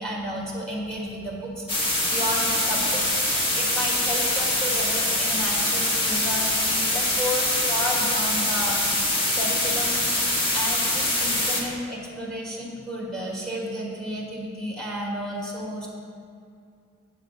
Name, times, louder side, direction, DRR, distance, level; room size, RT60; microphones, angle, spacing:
voice 1, 0.0-8.8 9.3-10.0 10.5-15.9, equal, 5° left, -3 dB, 1.4 m, -32 dB
sound 1, 1.7-11.6, left 1 dB, 25° left, 1.3 m, -24 dB
8.0 x 4.8 x 6.3 m, 2.4 s
head